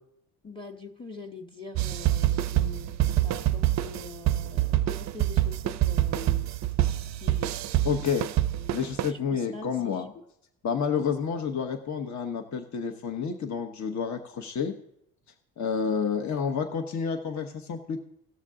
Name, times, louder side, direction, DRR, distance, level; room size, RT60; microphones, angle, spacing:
voice 1, 0.4-6.5 6.8-7.5 8.5-10.1, left 3 dB, 10° left, 2 dB, 1.2 m, -44 dB
sound 1, 1.7-9.1, right 14 dB, 40° right, 0.5 m, -26 dB
voice 2, 7.8-8.3 8.7-10.1 10.6-14.8 15.6-18.0, left 6 dB, 40° left, 4 dB, 1.1 m, -29 dB
17.0 x 6.4 x 3.7 m, 0.76 s
supercardioid pair, 70°, 43 cm